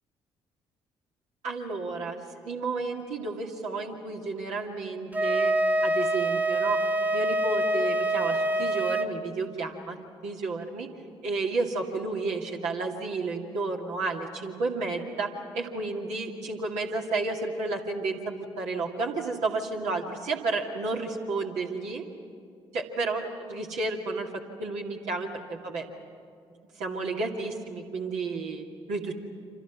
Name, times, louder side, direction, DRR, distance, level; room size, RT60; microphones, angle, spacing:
voice 1, 1.4-5.5 5.8-6.8 7.1-10.0 10.2-10.9 11.2-22.1 22.7-24.3 24.6-25.8 26.8-29.2, right 3 dB, 60° right, 0 dB, 2.4 m, -32 dB
Wind instrument woodwind instrument, 5.1-9.1, right 1 dB, 10° right, 1.1 m, -25 dB
29.5 x 26.5 x 6.1 m, 2.4 s
figure-of-eight pair, 40°, 14 cm